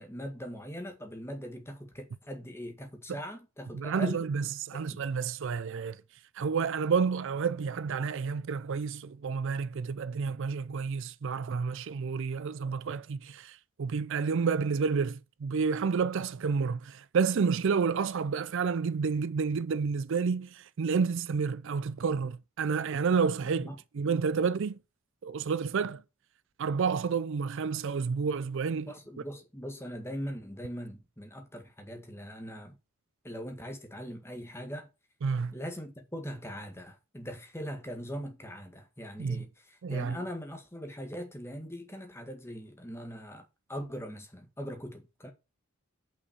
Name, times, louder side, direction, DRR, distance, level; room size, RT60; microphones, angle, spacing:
voice 1, 0.0-4.3 4.7-5.0 23.6-23.7 28.9-32.7 33.2-34.9 35.5-45.3, equal, 10° left, 1.7 m, -41 dB
voice 2, 3.7-6.0 6.4-24.8 25.2-26.0 26.6-28.9 35.2-35.5 39.2-39.5 39.8-40.2, right 5 dB, 60° right, 0.4 m, -30 dB
6.2 x 5.8 x 7.0 m
head